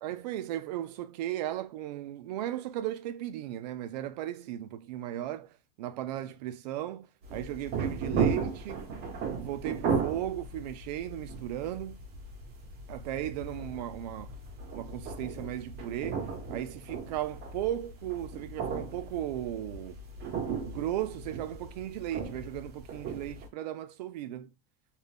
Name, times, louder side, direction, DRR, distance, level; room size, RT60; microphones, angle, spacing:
voice 1, 0.0-8.8 9.4-12.0 12.9-14.4 14.7-20.0 20.7-24.5, right 13 dB, 85° right, 0.4 m, -36 dB
sound 1, 7.2-23.5, right 5 dB, 50° right, 1.0 m, -35 dB
2.5 x 2.2 x 3.3 m
supercardioid pair, 130°, 20 cm